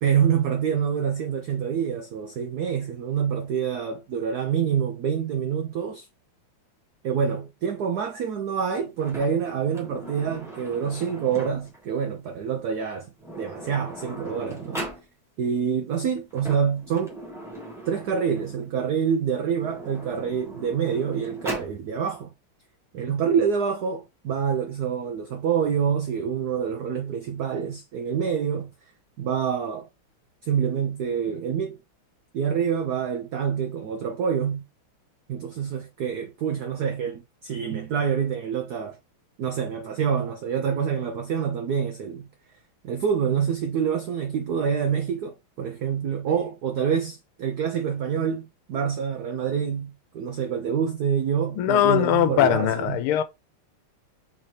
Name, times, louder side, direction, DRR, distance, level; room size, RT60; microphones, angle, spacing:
voice 1, 0.0-6.1 7.0-14.8 15.4-17.1 17.9-22.3 22.9-28.7 29.2-29.9 30.4-31.8 32.3-34.6 35.3-39.0 39.4-42.3 42.8-53.0, right 7 dB, 85° right, 0.8 m, -26 dB
Sliding door, 9.0-11.8 12.8-12.9 13.2-15.0 16.2-18.7 19.5-21.8, right 1 dB, ahead, 1.4 m, -39 dB
voice 2, 51.5-53.2, left 11 dB, 85° left, 1.5 m, -21 dB
4.2 x 4.1 x 3.1 m
omnidirectional pair, 2.4 m